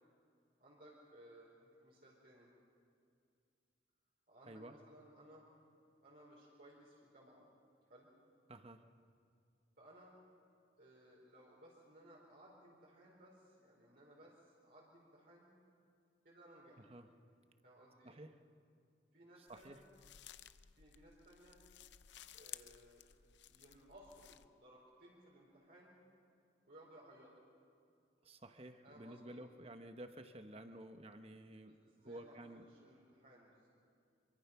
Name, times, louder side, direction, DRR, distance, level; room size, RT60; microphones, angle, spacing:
voice 1, 0.6-2.5 4.3-5.4 6.0-7.4 7.9-8.1 9.8-10.1 10.8-15.5 16.2-16.9 17.6-18.2 19.1-19.8 20.8-21.6 22.3-23.0 23.5-26.0 26.6-27.3 28.8-29.4 31.3-33.7, right 1 dB, 55° right, -5 dB, 4.5 m, -61 dB
voice 2, 8.5-8.9 16.8-17.1 18.0-18.3 19.4-19.8 28.2-32.6, right 1 dB, 30° right, 7 dB, 1.1 m, -53 dB
sound 1, 19.5-24.5, left 12 dB, 70° left, 0.6 m, -56 dB
26.5 x 24.0 x 6.0 m, 2.4 s
head